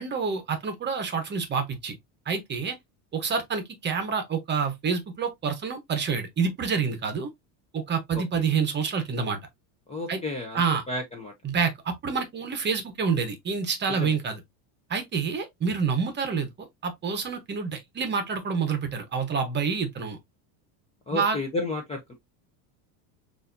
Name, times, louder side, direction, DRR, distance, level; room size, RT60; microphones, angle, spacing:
voice 1, 0.0-2.0 2.3-2.8 3.1-7.3 7.7-9.4 10.1-10.2 10.5-10.8 11.4-14.4 14.9-16.5 16.8-20.2 21.1-21.4, right 5 dB, 20° right, 0.9 m, -28 dB
voice 2, 9.9-10.6 10.9-11.3 14.0-14.1 21.1-22.1, left 2 dB, 15° left, 0.6 m, -31 dB
6.8 x 2.7 x 2.5 m
cardioid pair, 155°, 48 cm